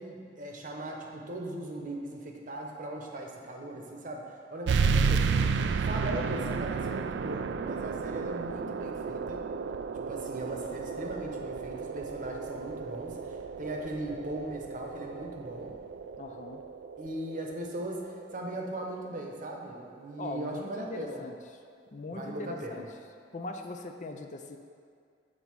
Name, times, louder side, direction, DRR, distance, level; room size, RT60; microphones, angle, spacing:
voice 1, 0.0-5.4 5.8-9.5 9.9-15.8 17.0-21.3 22.1-22.8, right 1 dB, 50° right, 1 dB, 0.9 m, -39 dB
sound 1, 4.7-19.8, right 5 dB, 75° right, 0.3 m, -32 dB
voice 2, 16.2-16.6 20.2-21.4 21.9-22.9 23.3-24.6, left 2 dB, 45° left, 5 dB, 0.5 m, -40 dB
7.5 x 4.0 x 6.1 m, 2.2 s
head